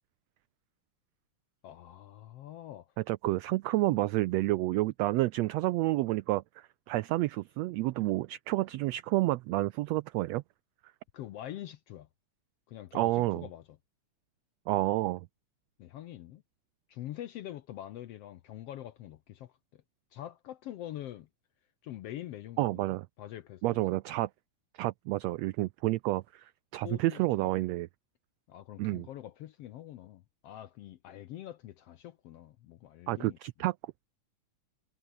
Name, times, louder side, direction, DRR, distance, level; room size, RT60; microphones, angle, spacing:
voice 1, 1.6-2.9 11.1-12.1 12.7-13.6 15.8-16.4 16.9-19.8 20.1-21.3 21.8-22.8 23.2-24.0 26.8-27.5 28.5-33.4, left 12 dB, 70° left, 1.5 m, -45 dB
voice 2, 3.1-10.4 12.9-13.5 14.7-15.3 22.6-23.0 23.6-24.3 24.8-27.9 28.8-29.1 33.1-33.7, right 18 dB, 90° right, 1.5 m, -30 dB
omnidirectional pair, 3.6 m